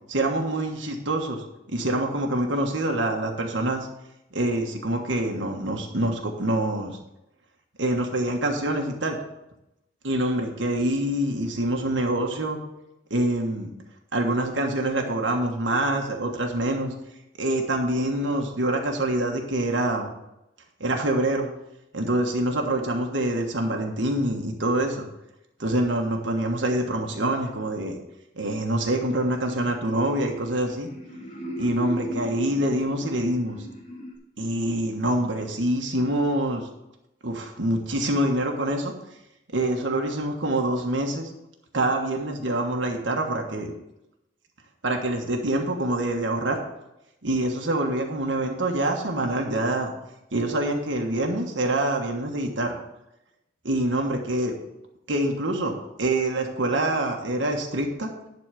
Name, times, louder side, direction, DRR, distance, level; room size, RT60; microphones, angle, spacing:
voice 1, 0.1-3.9 4.3-7.0 7.8-9.2 10.0-12.6 13.1-13.7 14.1-16.9 17.4-20.1 20.8-21.5 21.9-25.1 25.6-28.0 28.3-30.9 31.6-33.6 34.4-36.6 37.2-38.9 39.5-41.3 41.7-43.7 44.8-46.6 47.2-49.9 50.3-52.7 53.6-54.5 55.1-55.7 56.0-58.1, right 1 dB, 80° right, 2 dB, 1.5 m, -25 dB
sound 1, 28.8-34.2, equal, 35° left, 1.8 m, -38 dB
11.0 x 4.2 x 6.7 m, 0.89 s
head